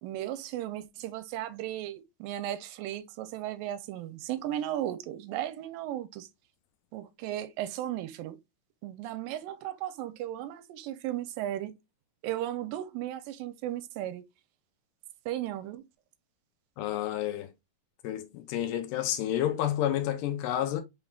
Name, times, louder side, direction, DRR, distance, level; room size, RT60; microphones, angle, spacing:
voice 1, 0.0-6.3 6.9-8.4 8.8-11.8 12.2-14.2 15.3-15.8, right 12 dB, 85° right, 2.2 m, -35 dB
voice 2, 16.8-17.5 18.0-20.8, left 11 dB, 80° left, 2.1 m, -30 dB
5.7 x 3.6 x 2.3 m
omnidirectional pair, 4.0 m